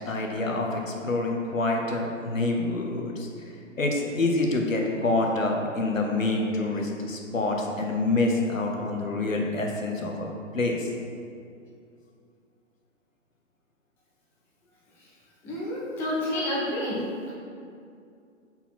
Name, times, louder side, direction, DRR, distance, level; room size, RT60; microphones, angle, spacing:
voice 1, 0.1-3.3 3.8-10.3 10.5-10.9, left 2 dB, 85° left, 0 dB, 1.1 m, -27 dB
voice 2, 15.4-17.0, left 1 dB, 5° left, -7 dB, 0.4 m, -29 dB
4.4 x 4.1 x 5.7 m, 2.4 s
figure-of-eight pair, 125°, 38 cm